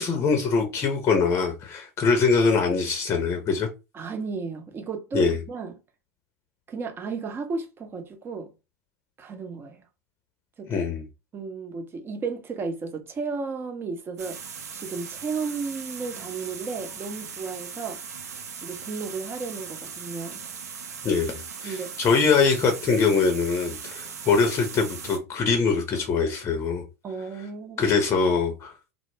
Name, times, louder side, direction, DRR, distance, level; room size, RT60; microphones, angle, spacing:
voice 1, 0.0-3.7 5.1-5.4 10.7-11.1 21.0-26.8 27.8-28.7, left 4 dB, 30° left, 0.6 m, -23 dB
voice 2, 3.9-5.8 6.7-8.5 9.2-9.8 10.6-10.9 11.3-14.4 14.7-18.0 18.6-20.4 21.6-21.9 27.0-28.0, right 4 dB, 25° right, 0.6 m, -33 dB
sound 1, 14.2-25.2, right 6 dB, 80° right, 0.5 m, -39 dB
2.1 x 2.0 x 3.1 m
hypercardioid pair, 90°, 8 cm